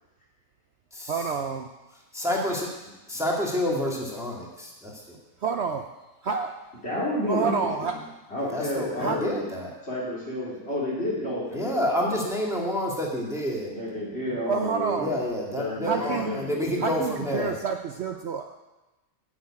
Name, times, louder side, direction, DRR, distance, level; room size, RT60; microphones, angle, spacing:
voice 1, 1.1-1.6 5.4-5.8 6.2-6.5 7.3-8.0 8.9-9.2 14.5-15.1 15.8-16.4 16.8-18.6, right 5 dB, 60° right, 5 dB, 0.8 m, -28 dB
voice 2, 2.1-2.7 3.1-5.2 8.5-9.7 11.5-13.7 15.0-17.5, left 1 dB, ahead, -2 dB, 2.0 m, -28 dB
voice 3, 6.8-7.5 7.8-8.0 8.3-9.4 9.8-12.2 13.7-15.3 15.5-16.9, left 1 dB, 45° left, -6 dB, 3.9 m, -31 dB
9.5 x 6.5 x 8.8 m, 1.1 s
omnidirectional pair, 1.5 m